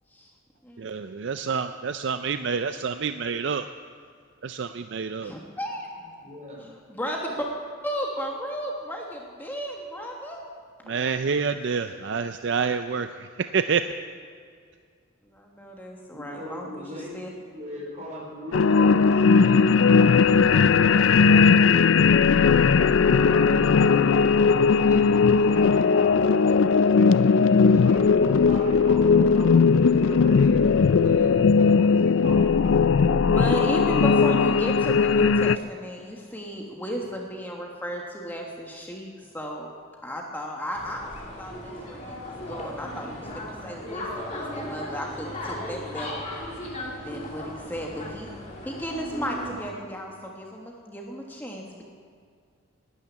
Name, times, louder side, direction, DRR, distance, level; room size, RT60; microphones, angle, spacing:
voice 1, 0.8-3.7 4.4-5.3 10.8-14.0, right 5 dB, 60° right, 9 dB, 0.4 m, -28 dB
voice 2, 5.2-5.9 6.9-7.5 7.8-10.4 15.2-17.3 33.2-39.7 40.0-46.2 47.0-48.3 48.6-51.8, equal, 10° left, 0 dB, 1.3 m, -34 dB
voice 3, 6.0-6.6 16.1-17.1 17.5-27.3 27.6-30.6 31.0-32.8, equal, 35° right, -2 dB, 4.3 m, -39 dB
sound 1, 18.5-35.6, left 5 dB, 70° left, 0.4 m, -18 dB
sound 2, 40.7-49.7, left 1 dB, 35° left, 2.7 m, -36 dB
12.5 x 10.5 x 9.5 m, 2.1 s
head